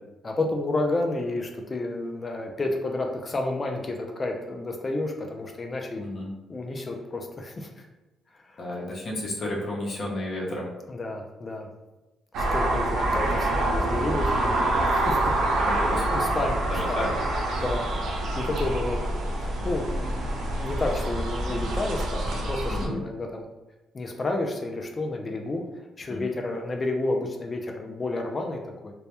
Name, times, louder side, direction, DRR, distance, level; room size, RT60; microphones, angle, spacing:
voice 1, 0.2-6.0 6.5-7.9 8.4-8.6 10.9-11.7 12.4-15.3 16.1-16.6 16.9-17.0 17.6-17.9 18.1-19.1 19.4-23.4 23.9-25.6 26.0-28.9, left 2 dB, 30° left, 2 dB, 0.3 m, -31 dB
voice 2, 6.0-6.3 8.6-10.7 15.6-16.4 16.7-17.1 22.7-23.0 26.1-26.2, left 1 dB, 55° left, -3 dB, 0.7 m, -32 dB
sound 1, 12.3-22.9, right 1 dB, 75° right, 0.4 m, -26 dB
2.1 x 2.1 x 2.8 m, 1.0 s
cardioid pair, 90°, 0 cm